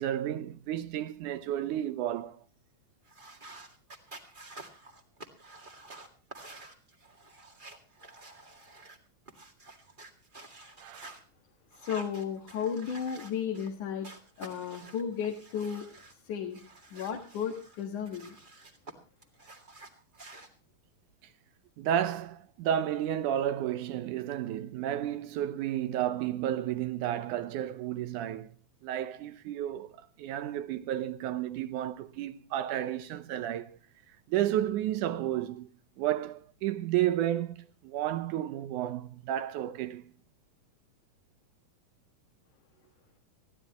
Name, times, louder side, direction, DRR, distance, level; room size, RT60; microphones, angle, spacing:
voice 1, 0.0-2.4 10.8-11.2 21.8-28.6 28.8-33.8 34.3-35.7 36.0-40.0, right 11 dB, 80° right, 2.3 m, -32 dB
sound 1, 3.1-11.2 11.7-13.7 14.0-16.2 16.5-18.9 19.2-20.5, right 2 dB, 20° right, 1.5 m, -50 dB
voice 2, 11.8-14.1 14.4-15.9 16.2-16.6 16.9-18.4, left 7 dB, 75° left, 3.1 m, -34 dB
21.5 x 15.0 x 3.0 m
omnidirectional pair, 3.6 m